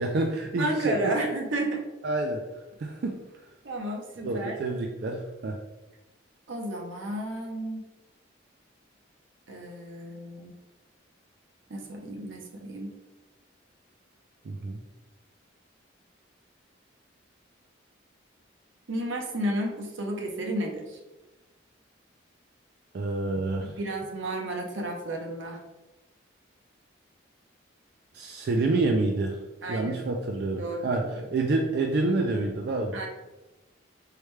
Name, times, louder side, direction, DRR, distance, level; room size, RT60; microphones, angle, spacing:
voice 1, 0.0-1.2 2.0-2.4 2.8-3.2 4.2-5.6 14.4-14.8 22.9-23.8 28.1-29.4 29.7-33.1, right 2 dB, 55° right, 2 dB, 0.3 m, -28 dB
voice 2, 0.6-1.8 3.6-4.6 6.5-7.8 9.5-10.5 11.7-12.9 18.9-21.0 23.8-25.6 29.6-30.0 30.6-31.0 32.9-33.1, right 1 dB, 75° right, 1 dB, 0.7 m, -32 dB
4.7 x 2.2 x 3.1 m, 1.1 s
head